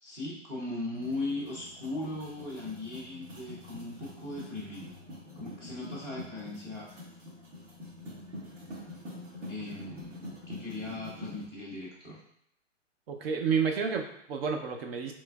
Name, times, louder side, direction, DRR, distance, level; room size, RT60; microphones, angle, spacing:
voice 1, 0.0-4.9 5.4-6.9 9.5-10.2 10.5-12.2, left 2 dB, 10° right, -8 dB, 0.3 m, -38 dB
sound 1, 0.9-11.4, left 1 dB, 80° right, 1.4 m, -45 dB
voice 2, 13.1-15.1, right 6 dB, 55° right, 4 dB, 0.6 m, -30 dB
4.3 x 3.1 x 2.3 m, 0.73 s
hypercardioid pair, 135°, 37 cm